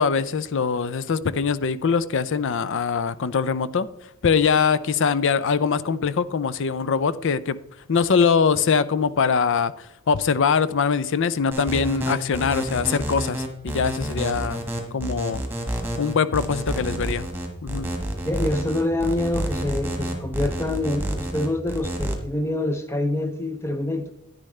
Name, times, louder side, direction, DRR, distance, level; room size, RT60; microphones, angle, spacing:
voice 1, 0.0-3.9 4.2-7.6 7.9-14.6 14.9-15.4 16.0-17.3 17.6-17.9, left 5 dB, 60° left, 0.5 m, -22 dB
sound 1, 11.5-22.1, right 1 dB, 10° right, 1.5 m, -29 dB
voice 2, 18.2-24.1, left 1 dB, 10° left, 0.6 m, -26 dB
10.0 x 10.0 x 3.3 m
head